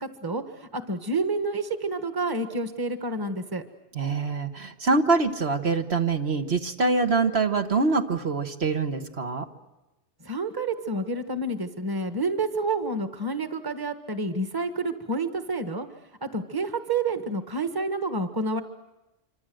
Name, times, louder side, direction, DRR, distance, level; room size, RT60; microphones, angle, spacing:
voice 1, 0.0-3.6 10.2-15.9 16.2-18.6, right 2 dB, 20° right, 8 dB, 1.5 m, -29 dB
voice 2, 3.9-9.5, right 4 dB, 60° right, 5 dB, 1.7 m, -24 dB
26.5 x 25.5 x 7.8 m, 1.0 s
omnidirectional pair, 1.2 m